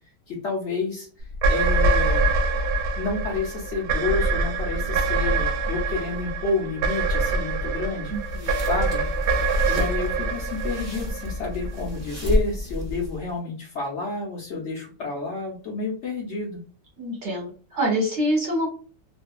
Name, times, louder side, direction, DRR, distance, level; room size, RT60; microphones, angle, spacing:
voice 1, 0.3-2.3 2.9-8.1 8.7-9.0 9.6-16.6, left 3 dB, 55° left, -2 dB, 0.8 m, -30 dB
sound 1, 1.3-11.8, right 3 dB, 75° right, 1.1 m, -24 dB
sound 2, 8.1-13.4, left 1 dB, 25° right, 1.0 m, -30 dB
voice 2, 8.1-8.6 9.6-9.9 17.0-18.7, equal, 45° right, -1 dB, 1.2 m, -26 dB
2.8 x 2.5 x 2.2 m, 0.40 s
omnidirectional pair, 1.9 m